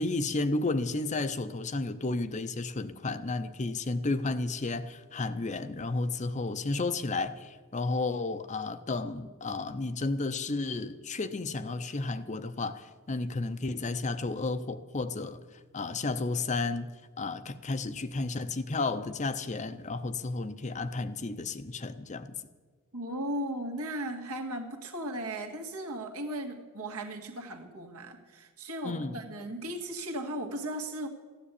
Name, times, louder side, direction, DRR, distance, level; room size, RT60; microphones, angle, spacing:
voice 1, 0.0-15.4 15.7-16.9 17.2-22.3 28.8-29.2, left 3 dB, 35° left, 11 dB, 0.6 m, -32 dB
voice 2, 22.9-31.1, right 1 dB, 75° right, 2 dB, 2.0 m, -36 dB
14.5 x 10.0 x 8.4 m, 1.4 s
head